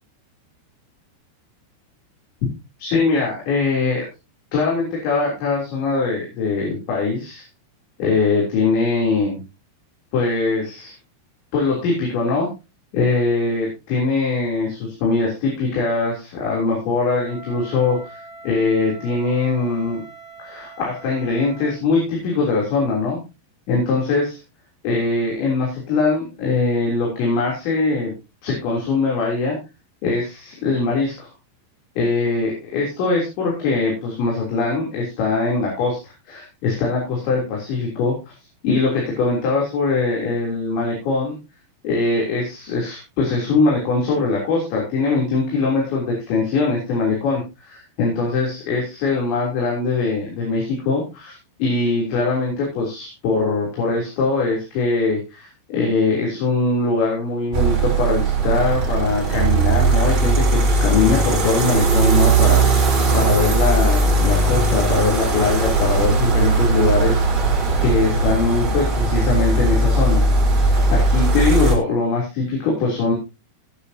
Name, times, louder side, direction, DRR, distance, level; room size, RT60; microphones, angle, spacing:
voice 1, 2.8-4.0 4.5-7.4 8.0-9.4 10.1-10.9 11.5-12.5 12.9-20.0 20.4-23.2 23.7-24.4 24.8-28.1 28.4-29.6 30.0-31.3 32.0-38.2 38.6-41.4 41.8-51.3 51.6-67.2 67.8-70.2 70.9-73.1, left 3 dB, 80° left, -3 dB, 5.6 m, -22 dB
Wind instrument woodwind instrument, 17.2-21.8, right 3 dB, 5° right, 6.9 m, -42 dB
sound 1, 57.5-71.7, right 3 dB, 30° right, 3.8 m, -18 dB
18.5 x 8.8 x 2.8 m, 0.27 s
omnidirectional pair, 5.1 m